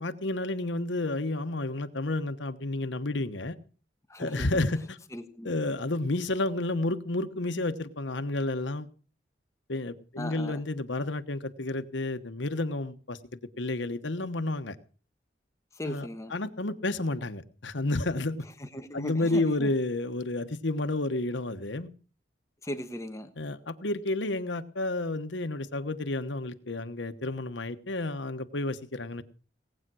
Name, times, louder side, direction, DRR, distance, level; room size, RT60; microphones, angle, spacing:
voice 1, 0.0-3.6 4.2-5.0 5.4-8.9 9.7-14.8 15.9-18.5 18.9-21.9 23.4-29.2, left 2 dB, 80° left, 10 dB, 1.2 m, -31 dB
voice 2, 4.1-4.6 5.1-5.6 10.2-10.6 15.8-16.3 18.6-19.7 22.6-23.3, left 1 dB, 15° left, 7 dB, 1.2 m, -37 dB
18.5 x 8.9 x 6.3 m, 0.39 s
head